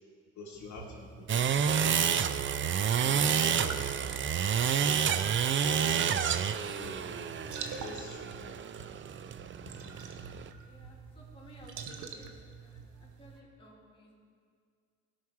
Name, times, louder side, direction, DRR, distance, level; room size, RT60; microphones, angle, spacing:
voice 1, 0.4-2.2 3.0-4.3 4.8-5.0 5.5-8.5 9.2-9.3 9.8-10.0 10.3-10.4, left 3 dB, 70° left, -3 dB, 2.0 m, -47 dB
sound 1, 0.5-13.4, right 6 dB, 80° right, 1.0 m, -46 dB
sound 2, 1.3-10.5, right 7 dB, 40° right, 0.5 m, -29 dB
voice 2, 10.6-12.3 12.6-14.1, equal, 15° left, -5 dB, 3.1 m, -56 dB
17.0 x 6.2 x 4.7 m, 2.2 s
cardioid pair, 90°, 30 cm